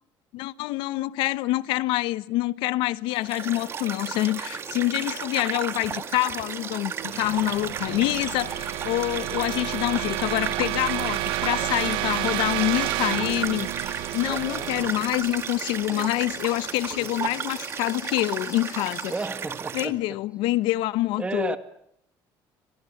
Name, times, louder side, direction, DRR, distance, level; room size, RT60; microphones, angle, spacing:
voice 1, 0.3-13.7 14.1-19.1 19.7-21.6, left 17 dB, 90° left, 1.0 m, -26 dB
sound 1, 3.1-19.9, right 7 dB, 30° right, 2.0 m, -34 dB
sound 2, 6.3-16.1, right 17 dB, 90° right, 1.0 m, -31 dB
sound 3, 10.7-19.3, left 9 dB, 40° left, 2.9 m, -49 dB
voice 2, 14.2-14.7 15.9-16.1 16.9-17.3 19.1-20.2 21.2-21.6, right 3 dB, 15° right, 2.1 m, -33 dB
29.5 x 25.5 x 7.2 m
cardioid pair, 170°, 8 cm